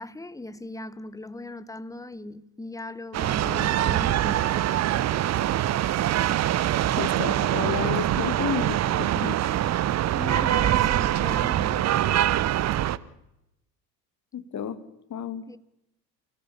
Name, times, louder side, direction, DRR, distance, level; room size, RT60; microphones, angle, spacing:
voice 1, 0.0-4.7 10.1-11.9 15.5-15.6, left 2 dB, 5° left, 1.2 m, -38 dB
sound 1, 3.1-13.0, right 12 dB, 35° right, 1.0 m, -24 dB
voice 2, 7.0-9.4 14.3-14.8 15.1-15.4, left 8 dB, 35° left, 2.4 m, -31 dB
28.5 x 16.5 x 7.3 m
figure-of-eight pair, 70°, 48 cm